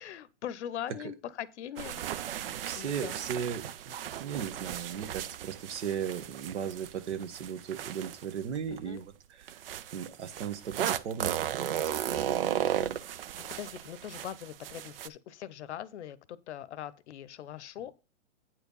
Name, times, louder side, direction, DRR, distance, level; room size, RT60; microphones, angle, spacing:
voice 1, 0.0-2.0 2.7-3.1 8.7-9.0 12.7-17.9, left 10 dB, 65° left, 0.8 m, -42 dB
sound 1, 1.8-8.8 9.5-15.1, right 10 dB, 50° right, 0.5 m, -35 dB
voice 2, 2.4-9.6 9.9-13.0, right 8 dB, 65° right, 1.4 m, -37 dB
8.8 x 4.7 x 5.3 m
hypercardioid pair, 160°, 37 cm